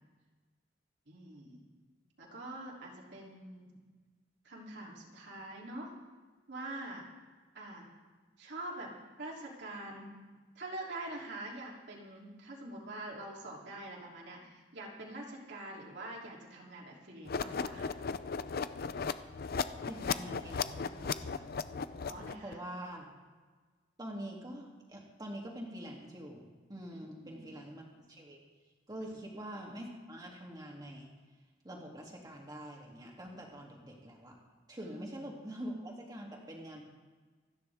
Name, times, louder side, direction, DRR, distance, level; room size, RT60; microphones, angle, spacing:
voice 1, 1.1-1.6 2.2-3.7 4.4-5.9 6.5-7.0 7.5-7.8 8.4-8.9 9.2-10.1 10.5-17.9 22.0-22.6 27.1-27.5 29.0-29.2 34.8-35.4, right 1 dB, 65° right, -3 dB, 3.1 m, -45 dB
sound 1, 17.3-22.5, left 5 dB, 55° left, 0.5 m, -36 dB
voice 2, 19.8-21.5 22.4-23.1 24.0-26.4 26.7-28.4 28.9-31.1 31.6-34.3 34.7-36.8, right 1 dB, 20° right, -1 dB, 2.7 m, -45 dB
27.5 x 10.0 x 3.6 m, 1.4 s
head